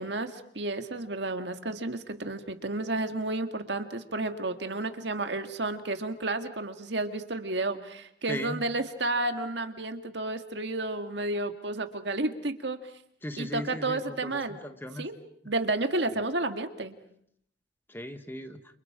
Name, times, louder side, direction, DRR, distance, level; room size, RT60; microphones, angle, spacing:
voice 1, 0.0-12.8 13.4-14.6 15.0-15.2 15.5-17.0, right 2 dB, 70° right, 7 dB, 1.9 m, -31 dB
voice 2, 8.3-8.6 13.2-15.1 17.9-18.6, left 1 dB, 10° left, 9 dB, 1.2 m, -37 dB
29.5 x 28.5 x 5.0 m, 0.68 s
head